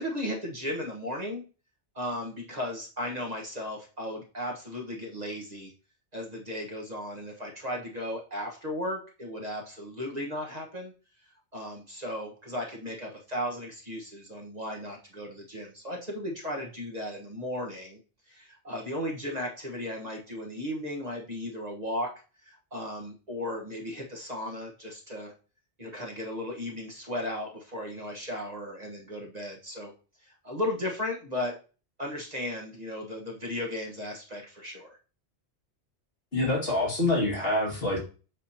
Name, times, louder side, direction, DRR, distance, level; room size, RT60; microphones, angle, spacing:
voice 1, 0.0-1.4 1.9-5.7 6.1-10.9 11.5-18.0 18.2-25.3 25.8-29.9 30.2-31.6 32.0-35.0, left 1 dB, 40° right, -1 dB, 1.3 m, -35 dB
voice 2, 36.3-38.0, left 2 dB, 60° left, -2 dB, 2.2 m, -26 dB
7.6 x 5.1 x 2.8 m, 0.35 s
omnidirectional pair, 1.1 m